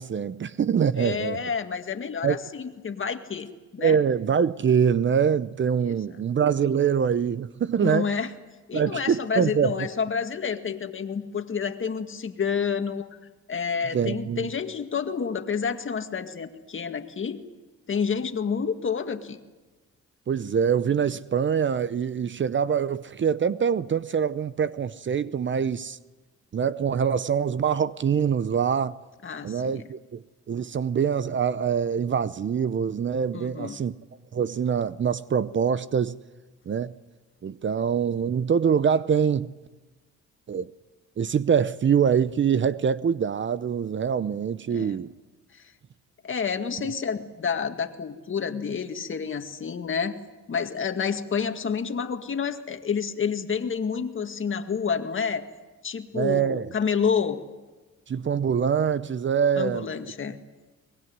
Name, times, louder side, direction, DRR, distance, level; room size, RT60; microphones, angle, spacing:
voice 1, 0.0-1.4 2.2-2.4 3.8-8.1 8.7-9.8 13.9-14.5 20.3-26.0 26.5-29.0 29.4-33.9 34.3-36.1 36.7-36.9 37.4-39.5 40.5-40.7 41.2-45.1 46.8-46.9 56.1-56.7 58.1-60.1, right 7 dB, 40° right, 0.7 m, -24 dB
voice 2, 1.0-3.5 3.7-4.0 5.8-5.9 7.8-8.3 8.7-13.1 13.5-17.4 17.9-19.4 29.2-29.9 33.3-33.8 44.7-45.0 46.2-50.2 50.5-55.5 55.8-57.4 59.6-60.4, left 6 dB, 40° left, 2.0 m, -29 dB
23.0 x 21.0 x 9.5 m
cardioid pair, 90°, 30 cm